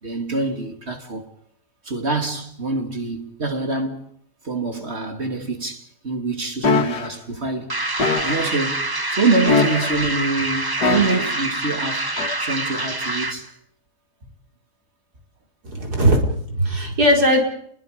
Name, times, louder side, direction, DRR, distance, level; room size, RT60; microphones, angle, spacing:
voice 1, 0.0-1.3 1.8-4.0 4.4-7.8 8.2-12.1 12.4-13.5 15.8-15.9, right 3 dB, 40° right, 3.0 m, -25 dB
sound 1, 6.6-7.1 8.0-8.5 9.5-10.1 10.8-11.4 12.2-12.3, left 3 dB, 75° left, 2.5 m, -21 dB
sound 2, 7.7-13.5, right 2 dB, 15° right, 0.9 m, -26 dB
voice 2, 15.6-17.4, equal, 70° right, 5.4 m, -18 dB
30.0 x 21.5 x 5.3 m
omnidirectional pair, 1.7 m